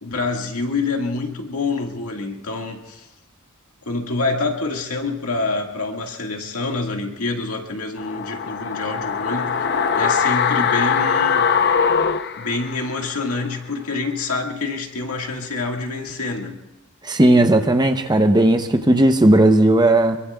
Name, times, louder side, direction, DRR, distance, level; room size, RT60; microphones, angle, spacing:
voice 1, 0.0-3.1 3.9-9.6 9.9-11.6 12.4-16.6, left 3 dB, 85° left, 2 dB, 1.9 m, -26 dB
sound 1, 8.0-13.1 13.4-13.5, left 6 dB, 50° left, 0.7 m, -21 dB
voice 2, 17.0-20.2, right 1 dB, 20° right, 6 dB, 0.8 m, -15 dB
25.5 x 22.5 x 2.4 m, 0.97 s
head